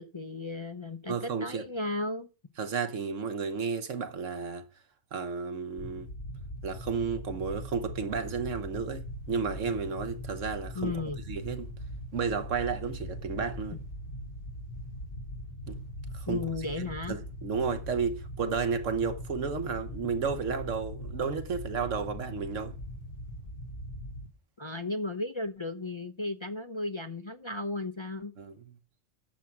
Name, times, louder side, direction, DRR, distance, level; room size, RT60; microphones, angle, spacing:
voice 1, 0.0-2.3 10.7-11.2 13.7-13.8 16.3-17.2 24.6-28.3, left 2 dB, 35° left, 0.5 m, -35 dB
voice 2, 1.1-1.6 2.6-4.6 5.1-6.1 6.6-11.7 12.1-13.8 15.7-15.8 16.1-16.4 16.8-22.7 28.4-28.6, right 5 dB, 75° right, 1.4 m, -32 dB
sound 1, 5.8-24.3, equal, 50° left, 1.3 m, -41 dB
10.5 x 7.5 x 5.9 m
omnidirectional pair, 1.3 m